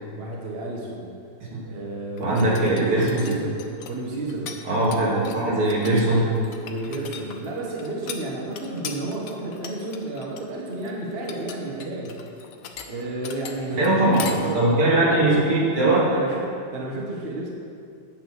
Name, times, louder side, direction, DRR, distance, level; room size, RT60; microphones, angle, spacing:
voice 1, 0.2-1.1 1.6-3.6 3.9-4.6 6.6-12.2 12.8-17.5, right 2 dB, 30° right, -2 dB, 1.3 m, -31 dB
sound 1, 2.2-4.6 4.8-14.4, left 7 dB, 80° left, 0.7 m, -39 dB
voice 2, 2.2-3.3 4.7-6.4 13.7-16.0, right 1 dB, 85° right, -6 dB, 3.2 m, -21 dB
8.9 x 6.2 x 6.4 m, 2.4 s
omnidirectional pair, 2.4 m